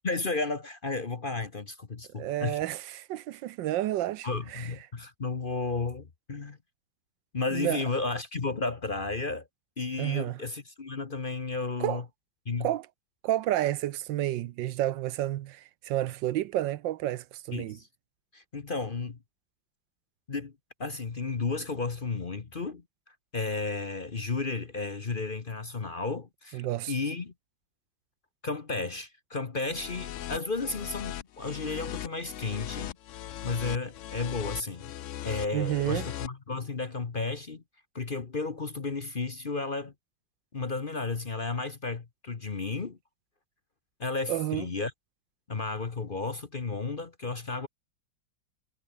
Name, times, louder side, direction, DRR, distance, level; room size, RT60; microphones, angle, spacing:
voice 1, 0.0-2.6 4.2-6.6 7.3-9.5 9.8-12.0 12.4-12.7 17.5-17.9 18.3-19.2 20.3-20.5 20.8-27.3 28.4-32.9 33.4-34.9 35.2-37.6 37.9-39.9 40.5-43.0 44.0-44.9 45.5-47.7, left 3 dB, 35° left, 1.1 m, -33 dB
voice 2, 2.2-4.7 7.5-7.8 10.0-10.4 11.8-12.0 12.6-12.9 13.2-17.8 26.5-26.9 35.5-36.1 44.3-44.6, right 13 dB, 80° right, 1.4 m, -30 dB
sound 1, 29.6-36.3, left 12 dB, 75° left, 0.7 m, -39 dB
omnidirectional pair, 2.0 m